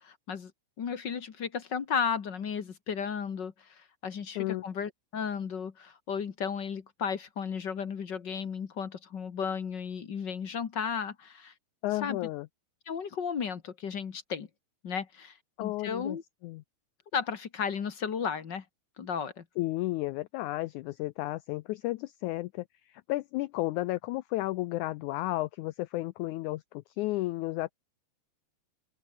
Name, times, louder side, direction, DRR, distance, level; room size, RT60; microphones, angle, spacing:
voice 1, 0.0-0.5 0.8-11.5 12.0-12.2 12.9-14.5 14.8-16.2 17.1-18.6 19.0-19.4, left 6 dB, 45° left, 1.5 m, -34 dB
voice 2, 11.8-12.5 15.6-16.2 16.4-16.6 19.6-27.7, left 18 dB, 90° left, 1.7 m, -33 dB
open air
omnidirectional pair, 4.1 m